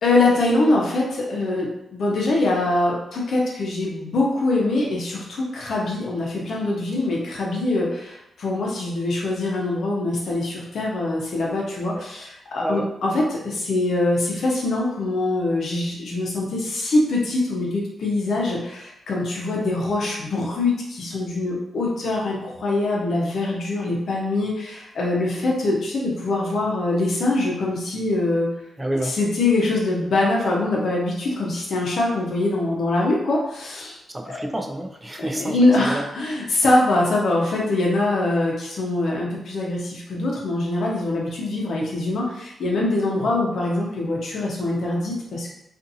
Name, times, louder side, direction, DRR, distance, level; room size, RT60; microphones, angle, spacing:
voice 1, 0.0-28.5 29.2-34.0 34.3-34.4 35.2-45.5, left 2 dB, 70° left, -2 dB, 0.7 m, -23 dB
voice 2, 28.8-29.1 34.1-36.0 43.2-43.3, right 1 dB, 10° right, 2 dB, 0.4 m, -29 dB
2.5 x 2.5 x 2.6 m, 0.84 s
cardioid pair, 105°, 0 cm